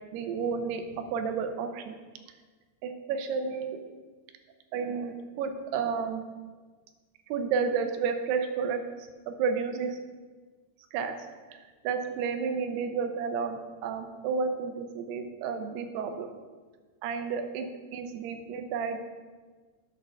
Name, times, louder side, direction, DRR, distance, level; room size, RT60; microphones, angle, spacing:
voice 1, 0.1-1.9 2.8-3.8 4.7-6.2 7.3-10.0 10.9-16.3 17.0-19.0, right 5 dB, 80° right, 7 dB, 2.7 m, -31 dB
8.6 x 5.5 x 6.2 m, 1.4 s
omnidirectional pair, 4.9 m